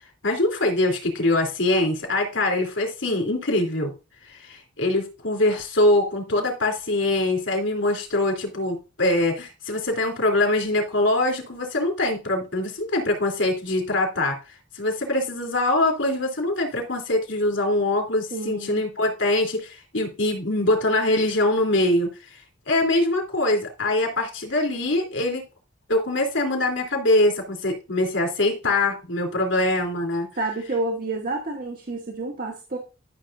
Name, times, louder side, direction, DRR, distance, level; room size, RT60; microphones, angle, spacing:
voice 1, 0.2-3.9 4.3-14.4 14.7-22.1 22.7-25.4 25.9-30.3, left 2 dB, 85° left, 2 dB, 3.1 m, -23 dB
voice 2, 18.3-18.8 30.3-32.8, right 2 dB, 50° right, 0 dB, 1.4 m, -29 dB
13.0 x 6.5 x 2.6 m, 0.30 s
head